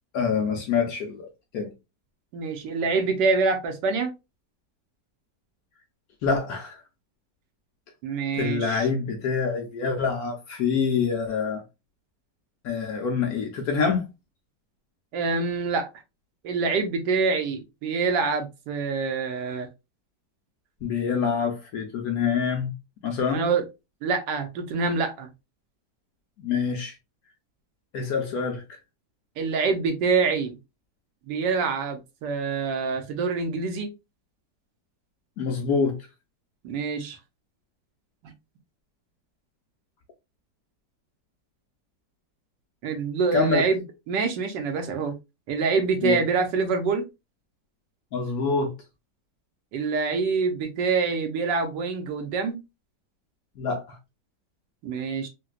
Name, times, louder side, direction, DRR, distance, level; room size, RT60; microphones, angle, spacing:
voice 1, 0.1-1.3 1.5-1.7 6.2-6.8 8.3-11.6 12.6-14.1 20.8-22.7 23.0-23.5 26.4-26.9 27.9-28.6 35.4-36.0 43.3-43.6 46.0-46.2 48.1-48.7 53.6-54.0, left 5 dB, 70° left, 0.9 m, -26 dB
voice 2, 2.3-4.1 8.0-8.9 15.1-15.9 16.4-19.7 23.3-23.7 24.0-25.3 29.4-30.6 31.3-33.9 36.6-37.2 38.2-38.3 42.8-45.1 45.5-47.1 49.7-52.6 54.8-55.3, right 4 dB, 75° right, 1.4 m, -26 dB
3.9 x 2.2 x 2.4 m
omnidirectional pair, 1.9 m